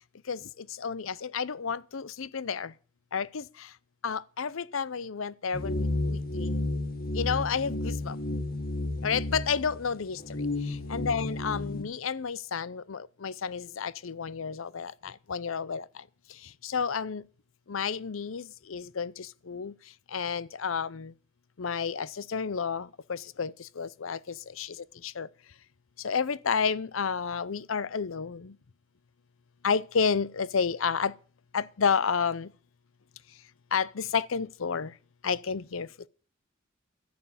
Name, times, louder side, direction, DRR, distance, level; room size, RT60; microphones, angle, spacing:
voice 1, 0.8-2.7 3.1-3.4 4.0-6.6 7.2-8.2 9.0-10.2 10.9-15.8 16.6-17.2 17.7-19.7 20.1-21.1 21.6-24.2 24.6-24.7 25.0-25.3 26.0-28.5 29.6-31.1 31.5-32.5 33.7-34.9 35.2-35.9, left 6 dB, 80° left, 0.6 m, -31 dB
sound 1, 5.5-11.8, left 2 dB, 50° left, 1.7 m, -32 dB
13.5 x 7.8 x 7.1 m
head